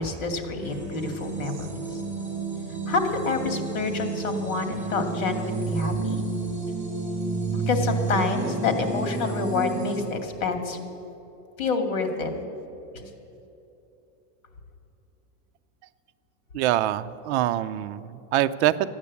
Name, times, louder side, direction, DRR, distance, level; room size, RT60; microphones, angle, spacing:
voice 1, 0.0-2.0 2.9-6.2 7.5-10.8 11.6-12.3 12.9-13.1, left 4 dB, 70° left, 6 dB, 2.4 m, -28 dB
sound 1, 0.6-10.1, right 4 dB, 5° right, 4.2 m, -30 dB
voice 2, 16.5-18.9, right 13 dB, 55° right, 11 dB, 0.5 m, -25 dB
13.5 x 9.5 x 8.3 m, 2.9 s
supercardioid pair, 180°, 42 cm